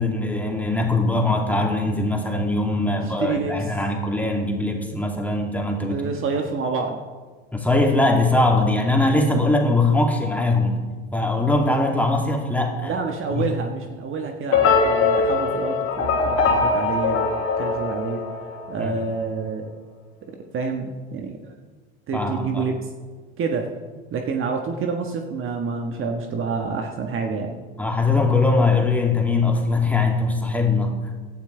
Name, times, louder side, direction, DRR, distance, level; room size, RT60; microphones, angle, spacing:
voice 1, 0.0-6.0 7.5-10.7 11.1-12.9 13.3-13.4 18.8-18.9 22.1-22.6 27.8-30.9, left 2 dB, 5° left, 0 dB, 2.8 m, -21 dB
voice 2, 2.9-3.5 5.9-7.0 12.8-17.2 17.6-18.2 18.7-19.7 20.3-21.5 22.1-22.9 23.4-23.7 24.1-27.6, right 4 dB, 40° right, 3 dB, 1.5 m, -28 dB
sound 1, 14.5-18.8, left 4 dB, 50° left, 3.3 m, -21 dB
17.5 x 11.5 x 3.4 m, 1.4 s
hypercardioid pair, 80°, 31 cm